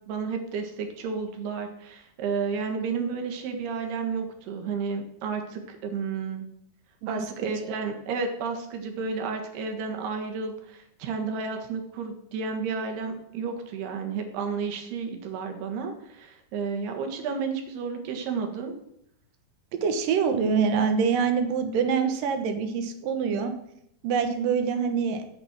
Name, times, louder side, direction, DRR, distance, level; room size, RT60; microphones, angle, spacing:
voice 1, 0.1-6.5 7.1-18.8, right 5 dB, 85° right, 4 dB, 3.6 m, -32 dB
voice 2, 19.7-23.5 24.0-25.2, right 6 dB, 65° right, 7 dB, 2.6 m, -25 dB
8.4 x 8.4 x 7.4 m, 0.75 s
omnidirectional pair, 4.5 m